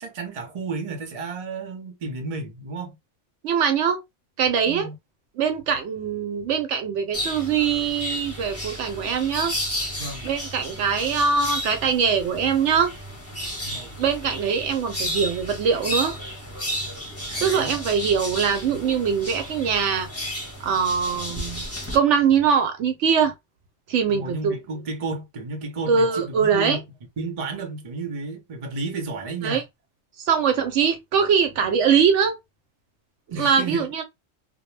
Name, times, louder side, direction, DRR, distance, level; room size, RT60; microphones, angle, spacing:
voice 1, 0.0-3.0 4.7-5.0 10.0-10.2 13.6-13.9 17.3-17.8 24.1-26.9 27.2-29.6 33.3-33.9, right 3 dB, 40° right, 0.6 m, -32 dB
voice 2, 3.4-4.0 4.4-4.9 5.4-9.6 10.2-12.9 14.0-16.1 17.4-20.1 20.6-21.6 21.9-23.3 23.9-24.6 25.9-26.8 29.4-29.6 30.2-32.4 33.4-34.0, right 6 dB, 70° right, 0.8 m, -22 dB
sound 1, 7.1-22.0, equal, 15° left, 0.6 m, -32 dB
2.1 x 2.1 x 3.0 m
omnidirectional pair, 1.3 m